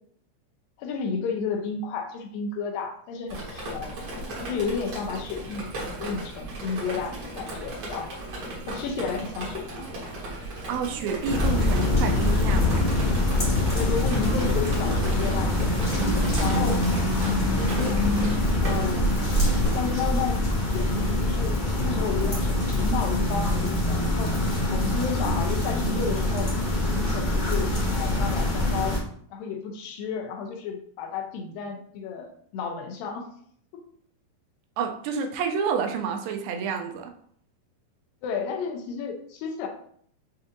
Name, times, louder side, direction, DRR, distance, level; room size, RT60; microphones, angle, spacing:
voice 1, 0.8-4.0 4.4-5.7 6.0-8.2 8.7-9.9 13.8-16.0 16.4-16.8 17.6-18.1 18.6-19.1 19.7-24.3 24.7-26.5 26.8-29.0 29.3-33.3 33.7-33.8 38.2-39.7, left 5 dB, 90° left, 3 dB, 2.4 m, -32 dB
Drip, 3.3-20.0, right 2 dB, 55° right, 2.2 m, -35 dB
sound 1, 5.2-13.9, left 1 dB, 70° right, 1.6 m, -45 dB
voice 2, 10.7-13.1 15.9-16.5 34.8-37.1, right 6 dB, 90° right, 4 dB, 2.4 m, -30 dB
sound 2, 11.3-29.0, left 1 dB, 55° left, 0.7 m, -24 dB
7.0 x 2.6 x 2.6 m, 0.62 s
omnidirectional pair, 4.0 m